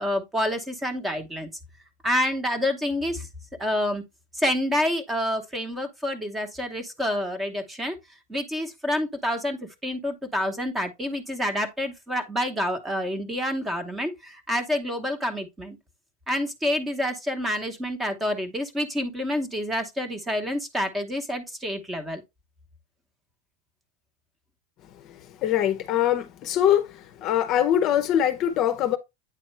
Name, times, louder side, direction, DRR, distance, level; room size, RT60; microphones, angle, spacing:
voice 1, 0.0-1.5 2.0-3.3 3.6-4.0 4.3-8.0 8.3-15.8 16.3-22.2, left 1 dB, 10° right, 1.0 m, -28 dB
voice 2, 25.4-26.8 27.2-29.0, left 10 dB, 35° left, 0.7 m, -22 dB
8.9 x 4.2 x 3.2 m
supercardioid pair, 160°, 0 cm